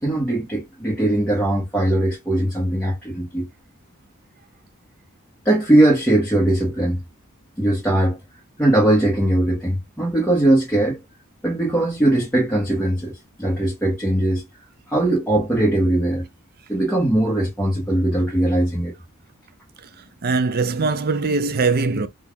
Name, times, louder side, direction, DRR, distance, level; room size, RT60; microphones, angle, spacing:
voice 1, 0.0-3.5 5.4-7.0 7.6-8.2 8.6-11.0 11.4-14.4 14.9-16.3 16.7-18.9, right 1 dB, 5° left, 1.4 m, -20 dB
voice 2, 19.8-22.1, right 4 dB, 45° right, 0.5 m, -22 dB
4.5 x 2.6 x 3.5 m
head